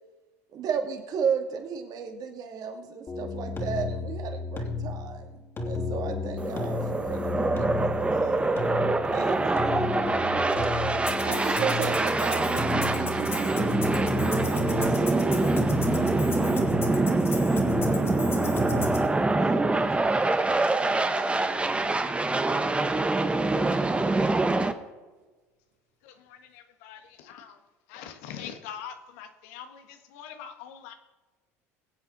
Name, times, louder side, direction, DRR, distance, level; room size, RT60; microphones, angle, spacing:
voice 1, 0.5-5.4 5.6-7.7 8.1-8.7 9.1-9.8 11.2-13.7 14.4-15.3, right 6 dB, 50° right, 4 dB, 2.3 m, -34 dB
sound 1, 3.1-19.1, left 4 dB, 30° left, 2.9 m, -33 dB
sound 2, 6.4-24.7, right 2 dB, 15° right, 1.0 m, -25 dB
voice 2, 16.9-22.2, right 6 dB, 80° right, 1 dB, 2.4 m, -47 dB
voice 3, 26.0-27.6 27.9-30.9, left 8 dB, 70° left, 7 dB, 1.6 m, -43 dB
22.5 x 8.0 x 4.1 m, 1.3 s
hypercardioid pair, 80°, 8 cm